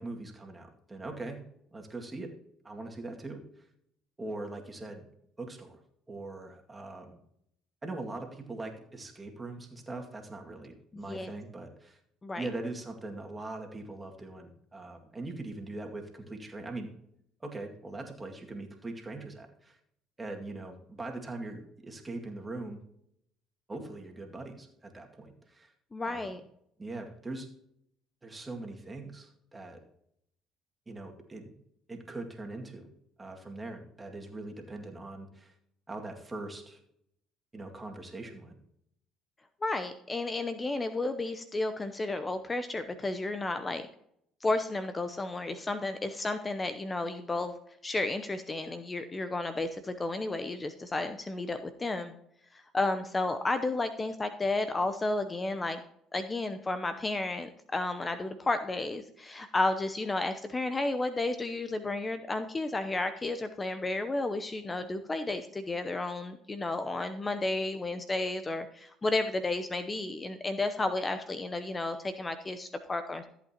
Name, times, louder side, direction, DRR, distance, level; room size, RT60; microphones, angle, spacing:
voice 1, 0.0-1.4 1.7-2.3 2.6-3.4 4.2-5.1 5.4-5.8 6.1-7.2 7.8-12.0 12.4-16.9 17.4-19.8 20.2-22.8 23.7-25.7 26.0-26.3 26.8-27.5 28.2-29.8 30.9-31.5 31.9-32.9 33.2-35.5 35.9-36.8 37.5-38.6, right 2 dB, 20° right, 2 dB, 2.1 m, -41 dB
voice 2, 10.9-11.3 12.2-12.5 25.9-26.4 39.6-43.8 44.4-47.5 47.8-52.1 52.5-55.8 56.1-73.3, left 2 dB, 25° left, 9 dB, 0.7 m, -32 dB
14.5 x 8.1 x 2.9 m, 0.74 s
supercardioid pair, 75°, 0 cm